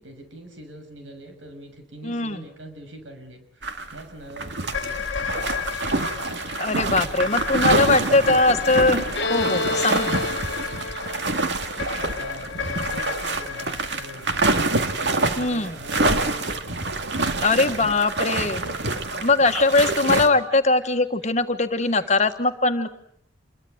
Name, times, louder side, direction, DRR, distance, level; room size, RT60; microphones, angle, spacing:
voice 1, 0.0-6.3 6.7-8.7 11.8-14.7 15.2-17.9 18.3-19.5 19.8-20.6 21.8-22.2, right 1 dB, 85° right, 6 dB, 6.5 m, -43 dB
voice 2, 2.0-2.5 6.6-9.0 9.3-10.2 15.4-15.7 17.4-18.6 19.2-22.9, left 3 dB, 40° left, 7 dB, 1.5 m, -21 dB
sound 1, 3.6-4.0 4.3-20.3, right 2 dB, 65° right, 2.2 m, -26 dB
sound 2, 4.7-15.1, left 6 dB, 90° left, 1.4 m, -34 dB
Bowed string instrument, 9.2-12.7, left 3 dB, 65° left, 1.2 m, -30 dB
28.0 x 22.5 x 8.0 m, 0.66 s
head